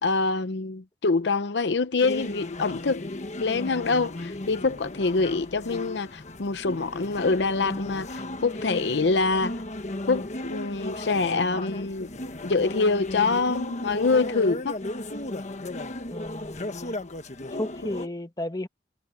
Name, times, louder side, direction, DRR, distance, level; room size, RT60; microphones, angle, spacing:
voice 1, 0.0-3.0 3.4-9.6 10.1-12.1 12.4-14.8, left 3 dB, 70° left, 0.7 m, -25 dB
sound 1, 2.0-18.1, left 1 dB, 40° left, 1.3 m, -35 dB
voice 2, 16.1-16.7 17.6-18.7, left 1 dB, 20° left, 1.5 m, -33 dB
head